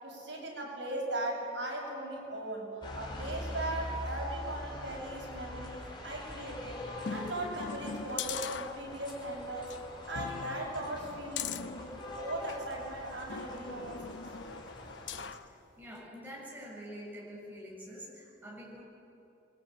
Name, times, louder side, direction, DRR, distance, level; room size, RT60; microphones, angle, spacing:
voice 1, 0.0-6.8 7.1-9.7 10.1-14.0, right 1 dB, 85° right, -1 dB, 7.7 m, -38 dB
sound 1, 2.8-15.3, left 1 dB, 25° left, 5.1 m, -44 dB
sound 2, 7.0-9.2 9.6-9.8 10.1-12.7 13.3-15.5 16.0-16.1, left 6 dB, 80° left, 0.8 m, -41 dB
voice 2, 15.3-18.8, equal, 10° right, -4 dB, 7.1 m, -46 dB
28.0 x 22.5 x 9.1 m, 2.7 s
head